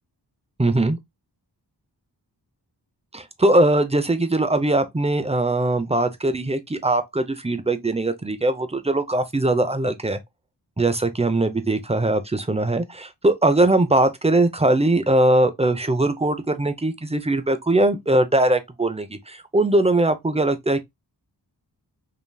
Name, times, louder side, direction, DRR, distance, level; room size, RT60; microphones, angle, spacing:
voice 1, 0.6-1.0 3.1-10.2 10.8-20.8, right 2 dB, 15° right, 0.7 m, -21 dB
5.3 x 3.0 x 2.3 m
wide cardioid pair, 65°, 43 cm